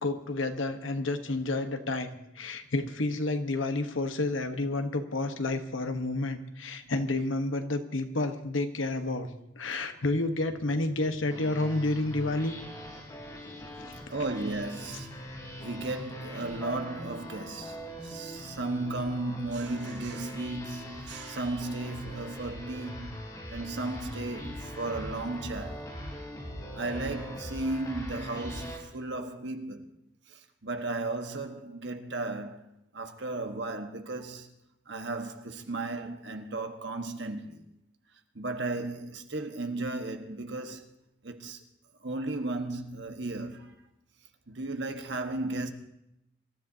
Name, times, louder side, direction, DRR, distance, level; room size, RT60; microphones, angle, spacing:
voice 1, 0.0-9.3 9.6-12.5, left 2 dB, 85° left, 1.2 m, -30 dB
voice 2, 6.8-7.2 9.7-9.9 14.1-15.1 15.6-23.2 23.5-25.8 26.7-29.9 30.3-32.7 32.9-34.5 34.9-37.7 38.3-41.0 41.2-41.6 42.0-43.8 44.5-45.7, right 2 dB, 65° right, 1.4 m, -35 dB
sound 1, 10.4-25.8, equal, 45° right, 3.2 m, -54 dB
sound 2, 11.3-28.8, equal, 20° left, 3.8 m, -42 dB
25.5 x 13.5 x 2.8 m
head